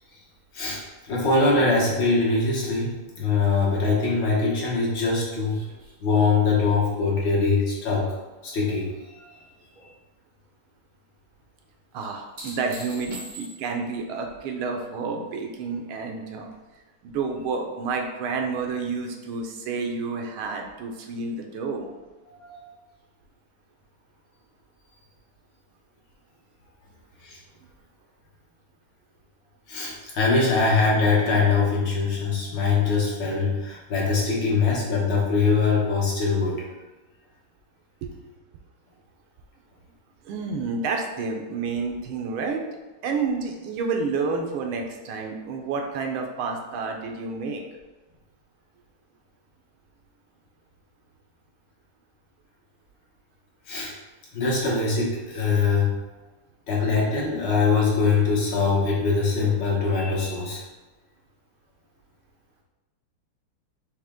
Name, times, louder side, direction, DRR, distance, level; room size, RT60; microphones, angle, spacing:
voice 1, 0.5-5.5 6.0-8.1 8.4-9.3 22.3-22.6 27.2-27.4 29.7-36.6 53.7-53.9 54.3-55.9 56.7-60.6, left 4 dB, 60° left, -4 dB, 1.6 m, -23 dB
sound 1, 5.5-9.0 9.3-9.9 12.0-13.9 16.5-16.6, right 1 dB, 45° right, 0.6 m, -45 dB
voice 2, 11.9-16.5 17.0-21.9 38.0-38.1 40.2-42.7 43.0-47.6, right 4 dB, 80° right, 3 dB, 1.4 m, -29 dB
5.0 x 2.8 x 3.5 m, 1.2 s
omnidirectional pair, 2.4 m